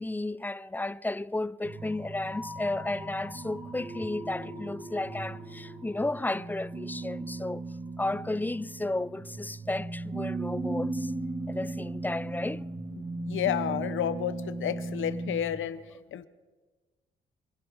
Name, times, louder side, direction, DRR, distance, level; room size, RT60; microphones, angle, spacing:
voice 1, 0.0-7.6 8.0-11.1 11.5-12.7, left 2 dB, 10° left, 0.4 m, -33 dB
sound 1, 1.6-15.4, right 2 dB, 30° right, 4.3 m, -37 dB
voice 2, 13.0-15.8 16.1-16.3, left 10 dB, 75° left, 0.9 m, -31 dB
26.0 x 11.5 x 4.7 m
cardioid pair, 75°, 20 cm